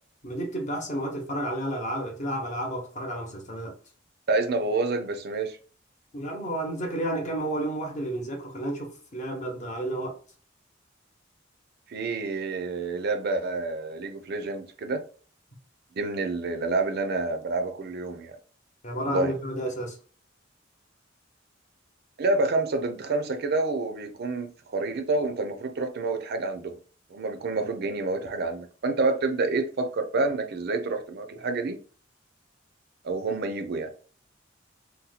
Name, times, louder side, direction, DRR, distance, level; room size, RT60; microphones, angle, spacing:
voice 1, 0.2-3.8 6.1-10.2 18.8-20.0, right 1 dB, 40° left, 0.9 m, -31 dB
voice 2, 4.3-5.6 11.9-15.0 16.0-18.4 19.0-19.3 22.2-26.8 27.1-31.8 33.0-33.9, right 3 dB, 55° right, 0.5 m, -28 dB
2.8 x 2.2 x 4.0 m
head